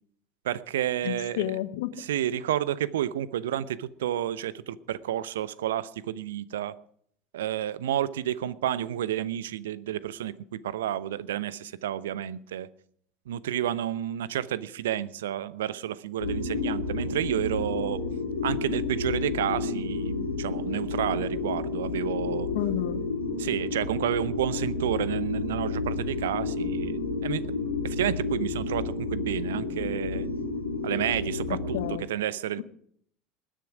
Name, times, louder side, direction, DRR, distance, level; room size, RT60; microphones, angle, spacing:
voice 1, 0.4-1.5 2.0-6.7 7.3-12.7 13.3-18.0 18.4-22.5 23.4-27.4 27.8-30.3 30.8-31.8 32.1-32.6, right 11 dB, 70° right, 18 dB, 0.8 m, -30 dB
voice 2, 1.0-2.0 22.5-23.0 31.5-32.1, left 13 dB, 60° left, 12 dB, 1.3 m, -31 dB
sound 1, 16.2-31.9, left 3 dB, 85° left, 3.4 m, -31 dB
20.5 x 10.5 x 4.9 m, 0.62 s
figure-of-eight pair, 70°, 0 cm